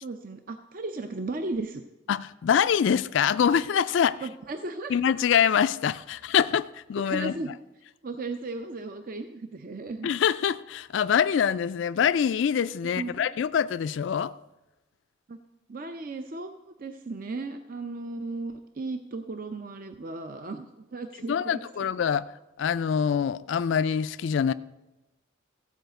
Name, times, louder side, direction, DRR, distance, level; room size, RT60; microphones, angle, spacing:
voice 1, 0.0-1.8 4.2-5.0 7.0-7.6 8.0-10.1 12.9-13.3 15.3-15.4 15.7-16.5 16.8-21.6, right 3 dB, 45° right, 0.5 m, -35 dB
voice 2, 2.1-4.2 4.9-7.3 10.0-14.3 21.3-22.3 22.6-24.5, left 7 dB, 70° left, 0.3 m, -24 dB
14.5 x 5.0 x 7.8 m
head